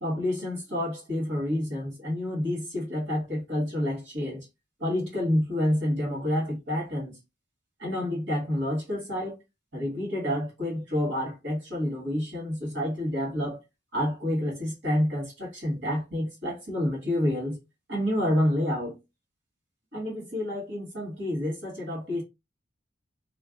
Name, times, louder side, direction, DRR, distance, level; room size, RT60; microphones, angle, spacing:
voice 1, 0.0-4.5 4.8-7.2 7.8-9.3 9.7-13.6 13.9-17.6 17.9-19.0 19.9-22.2, left 1 dB, 65° right, 1.4 m, -29 dB
2.5 x 2.1 x 2.3 m
head